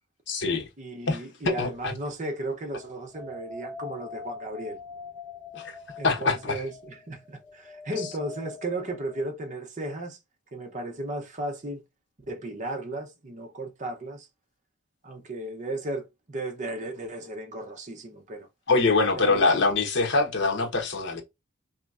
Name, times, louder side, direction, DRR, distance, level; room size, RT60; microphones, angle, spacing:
voice 1, 0.3-0.7 1.1-1.2 1.6-1.9 5.5-5.8 6.0-6.6 18.7-21.2, left 3 dB, 65° left, 1.1 m, -24 dB
voice 2, 0.8-4.8 6.0-10.2 10.5-11.8 12.3-14.3 15.0-18.5 19.1-19.6, right 1 dB, 40° right, 0.8 m, -35 dB
sound 1, 2.7-9.2, left 3 dB, ahead, 1.2 m, -43 dB
4.0 x 3.1 x 2.4 m
head